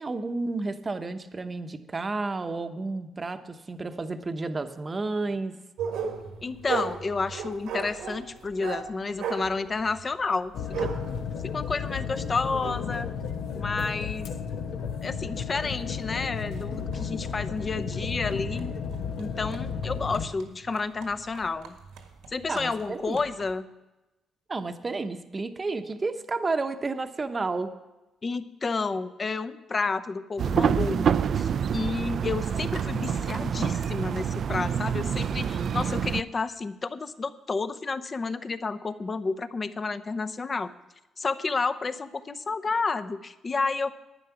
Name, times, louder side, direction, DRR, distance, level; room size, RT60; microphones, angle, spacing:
voice 1, 0.0-5.6 22.5-23.2 24.5-27.7, right 3 dB, 30° right, 9 dB, 0.9 m, -31 dB
sound 1, 5.8-13.9 14.5-14.6 15.2-15.3 15.7-23.5, right 6 dB, 85° right, 1.6 m, -38 dB
voice 2, 6.4-10.5 10.8-10.9 11.5-13.1 13.5-14.3 15.0-18.7 19.2-21.8 22.3-23.7 28.2-31.1 31.4-40.7 41.2-44.0, left 4 dB, 35° left, 12 dB, 0.7 m, -30 dB
sound 2, 10.5-20.3, left 7 dB, 75° left, 1.0 m, -33 dB
sound 3, 30.4-36.2, right 7 dB, 55° right, 0.4 m, -27 dB
11.0 x 9.4 x 5.9 m, 1.0 s
cardioid pair, 90°, 0 cm